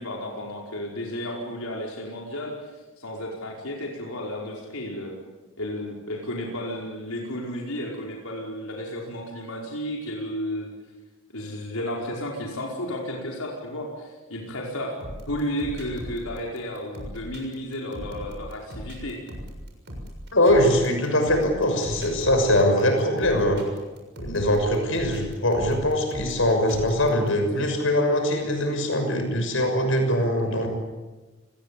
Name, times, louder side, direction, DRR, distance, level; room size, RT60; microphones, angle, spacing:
voice 1, 0.0-2.7 3.0-5.2 5.6-10.7 11.3-14.9 15.3-19.2, left 1 dB, 85° left, -1 dB, 5.1 m, -33 dB
sound 1, 15.0-27.3, equal, 50° right, 6.8 m, -39 dB
voice 2, 20.3-23.6 24.2-30.7, left 1 dB, 65° left, 5 dB, 6.4 m, -22 dB
29.5 x 21.0 x 8.6 m, 1.2 s
head